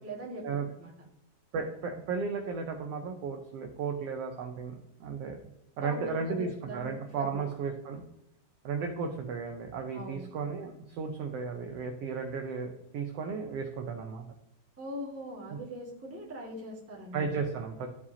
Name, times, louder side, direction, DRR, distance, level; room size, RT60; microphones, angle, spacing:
voice 1, 0.0-0.5 0.8-0.9 5.8-7.4 9.9-10.3 14.8-17.3, equal, 10° right, -3 dB, 1.0 m, -41 dB
voice 2, 1.5-5.4 5.8-8.0 8.6-14.2 15.5-15.6 17.1-17.9, right 5 dB, 80° right, 4 dB, 1.4 m, -34 dB
14.0 x 4.8 x 2.8 m, 0.83 s
omnidirectional pair, 3.7 m